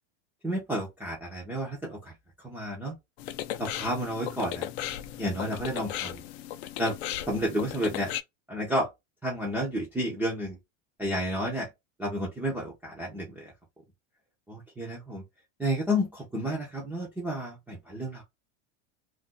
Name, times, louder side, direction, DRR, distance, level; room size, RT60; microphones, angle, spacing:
voice 1, 0.4-2.1 2.4-3.0 3.6-4.7 5.2-6.2 6.8-7.0 7.3-8.1 8.5-8.9 9.2-10.6 11.0-11.7 12.0-13.5 14.5-15.2 15.6-18.2, equal, 5° right, 0.4 m, -31 dB
sound 1, 3.2-8.2, left 12 dB, 60° left, 0.4 m, -36 dB
2.4 x 2.1 x 3.8 m
supercardioid pair, 155°, 37 cm